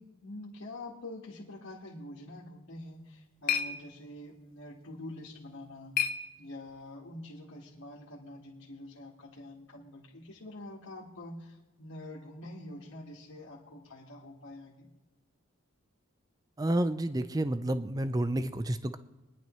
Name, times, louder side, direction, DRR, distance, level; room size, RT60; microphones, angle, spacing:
voice 1, 0.0-6.0 6.4-14.9, left 1 dB, 70° left, -5 dB, 1.6 m, -46 dB
sound 1, 2.7-7.0, left 7 dB, 40° left, 0.7 m, -37 dB
voice 2, 16.6-19.0, right 1 dB, 15° right, 12 dB, 0.4 m, -30 dB
23.0 x 10.5 x 3.1 m, 1.1 s
head